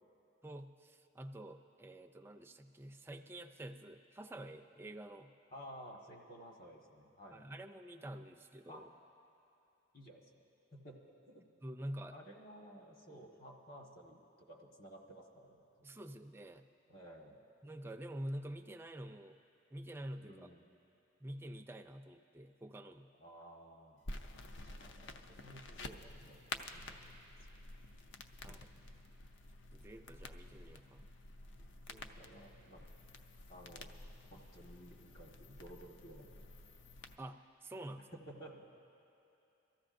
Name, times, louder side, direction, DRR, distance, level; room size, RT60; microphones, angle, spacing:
voice 1, 0.4-5.3 7.3-8.9 11.6-12.2 15.8-16.7 17.6-19.4 19.7-20.5 21.2-23.1 28.4-28.7 29.7-31.0 37.2-38.1, right 1 dB, 10° right, 4 dB, 0.3 m, -47 dB
voice 2, 5.5-7.5 8.7-8.8 9.9-10.4 10.7-11.5 12.1-15.6 16.9-17.4 20.2-20.7 23.2-24.0 24.6-27.2 28.4-28.6 31.9-32.8 33.5-33.9 34.3-36.7 38.0-38.7, equal, 45° left, -1 dB, 1.5 m, -55 dB
sound 1, 24.0-37.2, left 2 dB, 60° left, 0.5 m, -50 dB
23.5 x 14.0 x 2.6 m, 2.7 s
head